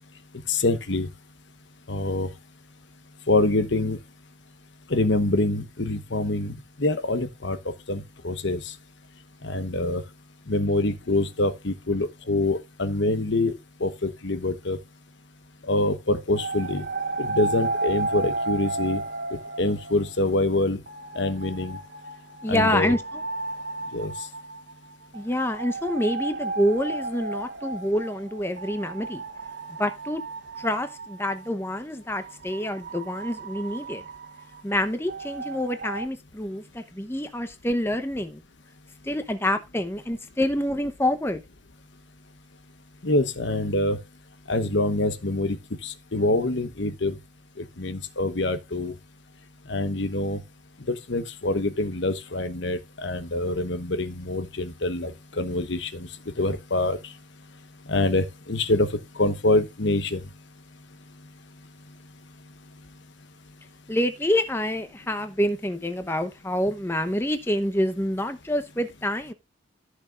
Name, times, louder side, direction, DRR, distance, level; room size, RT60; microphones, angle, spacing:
voice 1, 0.5-1.1 1.9-2.3 3.3-4.0 4.9-7.6 7.9-8.6 9.4-10.0 10.5-13.5 13.8-14.8 15.7-16.9 17.2-19.0 19.6-20.8 21.1-21.8 22.5-22.9 23.9-24.1 43.0-44.0 44.5-45.6 45.8-47.2 47.8-48.9 49.7-50.4 50.9-56.1 56.4-57.0 57.9-58.9 59.2-60.2, left 2 dB, 60° left, 1.0 m, -25 dB
sound 1, 16.3-20.5 20.9-31.5 32.1-36.1, right 3 dB, 50° right, 0.9 m, -33 dB
voice 2, 22.4-23.2 25.1-29.2 29.8-30.2 30.6-34.0 34.6-38.4 39.0-41.4 63.9-69.3, left 1 dB, 10° left, 0.8 m, -27 dB
14.5 x 6.3 x 2.5 m
head